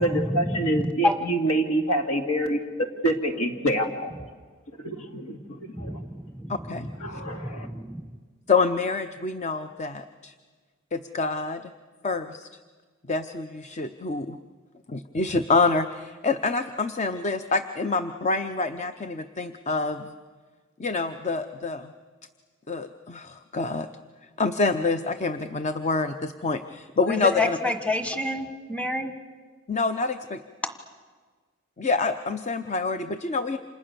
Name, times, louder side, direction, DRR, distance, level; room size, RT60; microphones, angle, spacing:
voice 1, 0.0-4.3 4.8-6.0 7.0-7.7, right 1 dB, 70° left, 5 dB, 2.5 m, -27 dB
voice 2, 0.7-1.1 5.7-8.1 27.1-29.1 30.6-30.7, left 1 dB, 5° left, 7 dB, 1.5 m, -29 dB
voice 3, 6.5-7.2 8.5-10.3 10.9-11.6 12.0-12.5 13.1-14.4 14.9-20.1 20.8-21.9 22.7-23.9 24.4-27.6 29.7-30.4 31.8-33.6, left 4 dB, 30° left, 9 dB, 0.7 m, -27 dB
29.5 x 27.0 x 6.9 m, 1.4 s
head